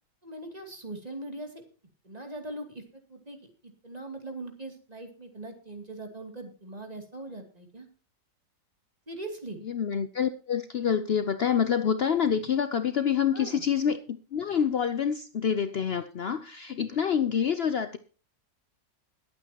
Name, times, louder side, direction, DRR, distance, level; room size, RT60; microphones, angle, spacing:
voice 1, 0.2-1.5 2.0-2.8 3.1-3.4 3.8-7.9 9.1-9.6 13.3-13.6, right 2 dB, 20° right, 4 dB, 2.7 m, -40 dB
voice 2, 9.6-18.0, left 7 dB, 75° left, 11 dB, 0.5 m, -27 dB
22.0 x 8.8 x 2.9 m, 0.37 s
omnidirectional pair, 2.0 m